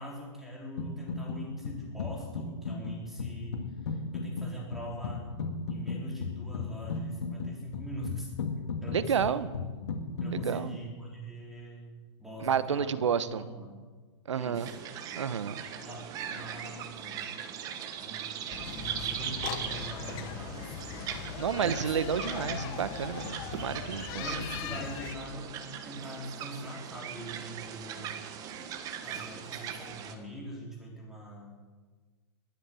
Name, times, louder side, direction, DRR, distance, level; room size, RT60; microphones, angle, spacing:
voice 1, 0.0-5.3 5.7-8.3 8.8-9.5 10.2-11.9 12.2-13.7 14.3-14.8 15.7-17.2 18.0-18.2 18.7-20.9 21.5-22.7 24.2-25.6 25.8-28.1 29.0-31.6, equal, ahead, -3 dB, 4.1 m, -43 dB
sound 1, 0.8-1.4 1.6-10.5, left 4 dB, 70° left, 2.4 m, -36 dB
voice 2, 8.9-9.5 10.3-10.8 12.4-13.4 14.3-14.7 15.2-15.6 21.4-24.3, right 7 dB, 85° right, 14 dB, 1.1 m, -30 dB
sound 2, 14.5-30.1, right 8 dB, 25° right, 1.3 m, -40 dB
sound 3, 18.5-25.2, left 9 dB, 30° left, 1.2 m, -40 dB
21.0 x 8.6 x 7.7 m, 1.4 s
hypercardioid pair, 150°, 15 cm